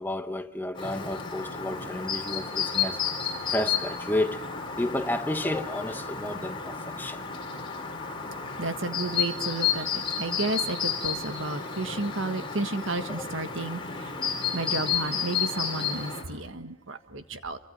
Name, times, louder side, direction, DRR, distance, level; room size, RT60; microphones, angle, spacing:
voice 1, 0.0-3.0 3.5-4.4 4.8-7.2 13.1-13.3, left 1 dB, 10° left, 1.1 m, -31 dB
Chirp tweet, 0.7-16.2, left 7 dB, 25° left, 4.2 m, -32 dB
voice 2, 8.6-14.1 14.5-17.6, right 2 dB, 65° right, 1.7 m, -32 dB
28.5 x 25.0 x 5.6 m
head